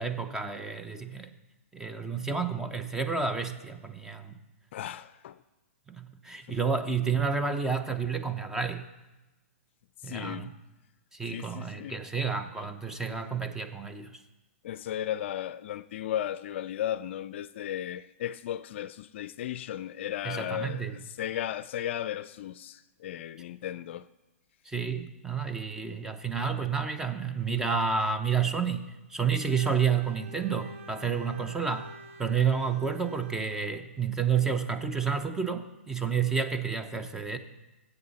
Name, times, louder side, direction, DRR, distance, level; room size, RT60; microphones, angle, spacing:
voice 1, 0.0-1.3 1.7-4.4 5.9-8.9 10.0-10.5 11.1-14.2 20.2-21.0 24.6-31.9 32.2-37.4, right 6 dB, 5° right, 0.8 m, -30 dB
voice 2, 4.7-5.4 6.5-6.6 10.0-10.5 11.3-12.0 14.6-24.1, left 11 dB, 55° left, 0.4 m, -35 dB
Bowed string instrument, 29.3-33.8, right 2 dB, 65° right, 1.5 m, -48 dB
18.0 x 8.1 x 4.1 m
hypercardioid pair, 135°, 8 cm